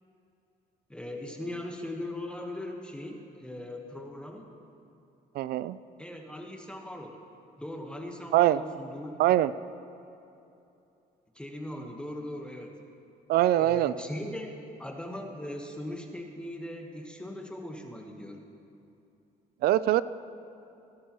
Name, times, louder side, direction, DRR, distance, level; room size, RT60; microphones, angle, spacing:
voice 1, 0.9-4.5 6.0-7.2 7.6-9.2 11.3-12.8 13.5-18.4, left 1 dB, 5° left, 1 dB, 1.2 m, -39 dB
voice 2, 5.3-5.8 8.3-8.6 9.2-9.5 13.3-13.9 19.6-20.0, right 13 dB, 70° right, 16 dB, 0.4 m, -23 dB
21.5 x 11.0 x 3.0 m, 2.8 s
cardioid pair, 110°, 17 cm